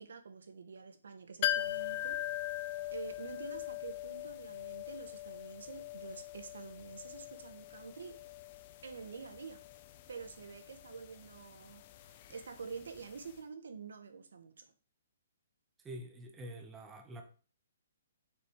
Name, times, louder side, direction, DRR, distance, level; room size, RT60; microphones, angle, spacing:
voice 1, 0.0-8.2 8.8-9.6 10.1-14.7, right 5 dB, 80° right, 1.4 m, -48 dB
sound 1, 1.4-13.0 13.3-13.4, left 13 dB, 30° left, 0.5 m, -41 dB
voice 2, 15.8-17.2, right 1 dB, 10° right, 0.8 m, -46 dB
6.8 x 5.6 x 3.6 m
hypercardioid pair, 170°, 0 cm